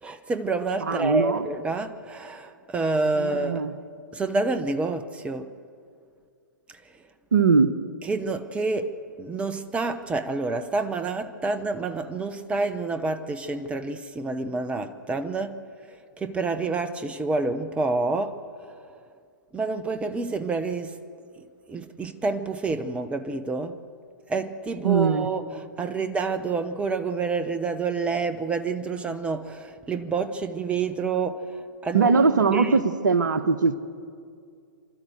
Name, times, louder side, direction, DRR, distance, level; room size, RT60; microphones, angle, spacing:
voice 1, 0.0-3.6 4.1-5.5 8.1-15.6 16.2-18.7 19.5-21.0 21.7-23.8 24.3-32.1 32.5-32.8, right 3 dB, 10° right, 0.9 m, -28 dB
voice 2, 0.8-1.4 3.2-3.7 7.3-7.8 24.8-25.3 31.9-33.8, right 5 dB, 70° right, 1.3 m, -21 dB
29.5 x 12.5 x 7.9 m
figure-of-eight pair, 115°, 10 cm